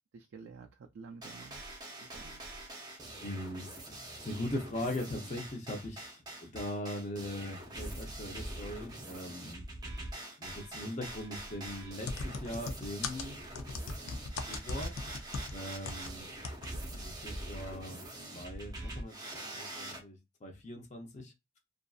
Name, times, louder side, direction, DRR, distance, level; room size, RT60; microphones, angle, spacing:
voice 1, 0.1-1.6 1.9-2.4 14.1-14.2, right 4 dB, 65° right, 0.3 m, -51 dB
sound 1, 1.2-20.0, right 1 dB, 20° right, 0.6 m, -44 dB
voice 2, 3.2-9.7 10.4-13.4 14.5-15.0 15.5-16.3 17.0-18.0 18.3-21.3, left 1 dB, 35° left, 0.6 m, -40 dB
sound 2, 12.1-16.1 16.4-16.7 17.0-17.1, left 3 dB, 85° left, 0.5 m, -38 dB
2.5 x 2.4 x 2.3 m
head